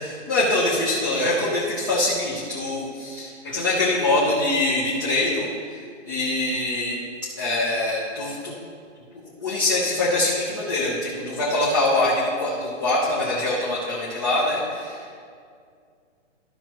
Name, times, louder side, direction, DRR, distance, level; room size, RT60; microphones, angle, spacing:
voice 1, 0.0-5.5 6.1-7.0 7.4-8.5 9.4-15.0, left 2 dB, 15° left, -6 dB, 0.7 m, -23 dB
14.0 x 5.5 x 3.0 m, 2.2 s
hypercardioid pair, 170°, 37 cm